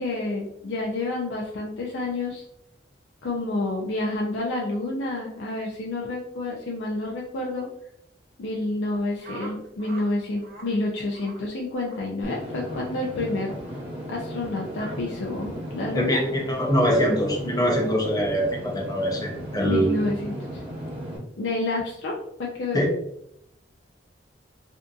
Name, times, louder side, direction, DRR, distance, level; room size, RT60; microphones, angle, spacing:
voice 1, 0.0-2.4 3.2-7.7 8.4-13.5 14.1-16.2 19.6-20.6 21.4-22.8, left 2 dB, 85° left, -3 dB, 0.4 m, -29 dB
sound 1, 9.2-10.1 10.4-10.7 11.1-11.4 11.8-12.0 12.6-12.9 13.6-13.8 14.7-15.0, right 3 dB, 55° right, 0.5 m, -44 dB
Engine / Mechanisms, 12.2-21.2, equal, 30° right, 0.8 m, -36 dB
voice 2, 15.9-20.0 22.7-22.9, equal, 20° left, 0 dB, 0.5 m, -23 dB
2.6 x 2.5 x 2.3 m, 0.75 s
head